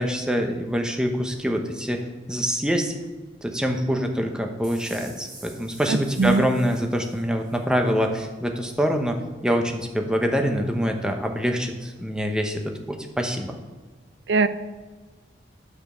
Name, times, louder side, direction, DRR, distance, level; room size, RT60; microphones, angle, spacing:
voice 1, 0.0-2.0 2.3-2.9 3.4-9.2 9.4-13.5, equal, 5° right, 3 dB, 0.9 m, -25 dB
sound 1, 4.6-7.6, right 2 dB, 25° right, 3.2 m, -46 dB
voice 2, 5.9-6.4 14.3-14.5, right 4 dB, 90° right, 13 dB, 0.5 m, -21 dB
9.4 x 5.2 x 6.2 m, 1.3 s
head